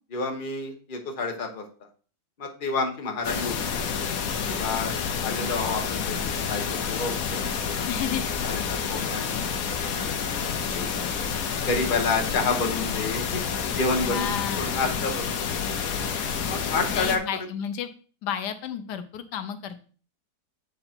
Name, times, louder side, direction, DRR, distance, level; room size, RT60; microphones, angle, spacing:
voice 1, 0.1-1.6 2.4-3.8 4.5-5.0 5.2-7.5 8.4-11.0 11.7-13.4 13.8-15.6 16.5-17.2, left 3 dB, 35° left, 3 dB, 1.1 m, -30 dB
sound 1, 3.2-17.2, left 6 dB, 65° left, 1.1 m, -29 dB
voice 2, 7.9-8.2 14.0-15.0 16.9-17.9 18.2-19.8, left 9 dB, 80° left, 10 dB, 1.2 m, -32 dB
7.9 x 3.8 x 4.3 m, 0.40 s
omnidirectional pair, 1.8 m